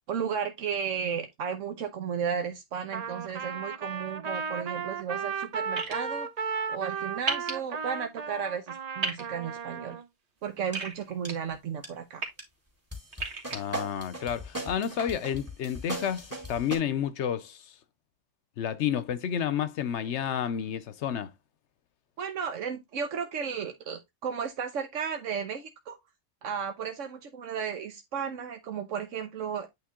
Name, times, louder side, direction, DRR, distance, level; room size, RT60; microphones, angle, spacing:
voice 1, 0.1-6.3 6.7-10.0 10.4-12.2 22.2-26.0 26.4-29.7, right 7 dB, 85° right, 1.2 m, -34 dB
Trumpet, 2.9-10.0, right 6 dB, 45° right, 0.5 m, -35 dB
sound 1, 5.8-5.9 7.3-7.5 9.0-9.2 10.7-11.3 12.0-12.3 13.1-13.6, right 3 dB, 60° right, 1.9 m, -31 dB
sound 2, 10.7-10.8 11.2-11.5 11.8-11.9 12.4-12.5 12.9-16.8, right 1 dB, 10° right, 2.3 m, -38 dB
voice 2, 13.5-17.6 18.6-21.3, left 9 dB, 70° left, 0.9 m, -30 dB
8.7 x 3.6 x 3.6 m
omnidirectional pair, 1.3 m